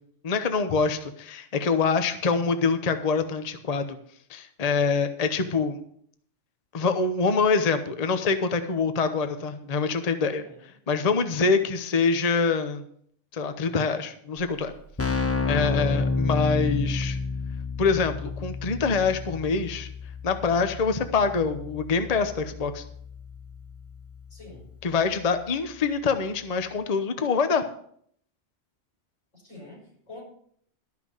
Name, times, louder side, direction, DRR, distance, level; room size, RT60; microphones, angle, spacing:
voice 1, 0.2-4.0 4.3-5.8 6.7-10.5 10.9-12.8 13.3-14.7 15.1-17.2 17.8-19.9 20.2-22.8 24.8-27.7, left 5 dB, 35° left, 9 dB, 0.8 m, -25 dB
voice 2, 10.2-10.6 10.9-11.2 24.3-24.7 29.3-30.2, left 2 dB, 90° left, -3 dB, 6.5 m, -47 dB
Keyboard (musical), 14.4-14.5 14.7-25.3, left 3 dB, 20° left, 0.4 m, -31 dB
12.5 x 5.9 x 7.6 m, 0.65 s
omnidirectional pair, 1.2 m